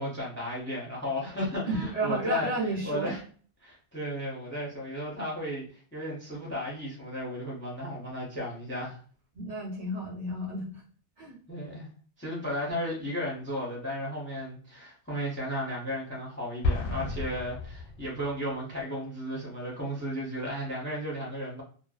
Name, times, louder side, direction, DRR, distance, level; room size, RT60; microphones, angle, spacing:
voice 1, 0.0-3.2 3.6-5.6 5.9-9.0 11.5-11.9 12.2-21.6, left 1 dB, 15° left, -3 dB, 0.5 m, -34 dB
voice 2, 1.7-3.1 9.3-10.8 11.2-11.4, right 2 dB, 45° right, -5 dB, 0.9 m, -32 dB
Explosion, 16.6-18.5, left 2 dB, 70° left, 0.8 m, -31 dB
2.5 x 2.1 x 2.3 m, 0.42 s
omnidirectional pair, 1.1 m